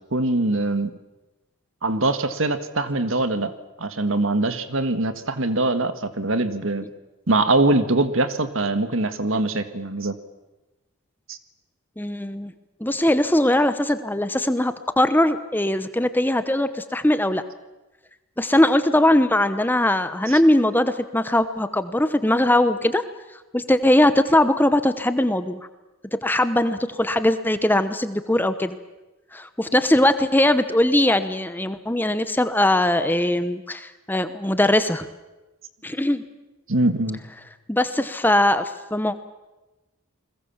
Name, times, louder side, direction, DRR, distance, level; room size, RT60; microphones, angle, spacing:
voice 1, 0.1-1.0 1.8-3.5 3.8-6.9 7.3-10.1 11.3-11.4 20.3-20.4 36.7-37.2, right 2 dB, 65° right, 10 dB, 1.8 m, -23 dB
voice 2, 12.0-12.5 12.8-17.4 18.4-23.0 23.5-25.6 26.1-28.8 29.3-35.1 35.8-36.2 37.7-39.2, left 1 dB, 10° left, 11 dB, 0.9 m, -20 dB
29.5 x 21.0 x 7.3 m, 1.1 s
head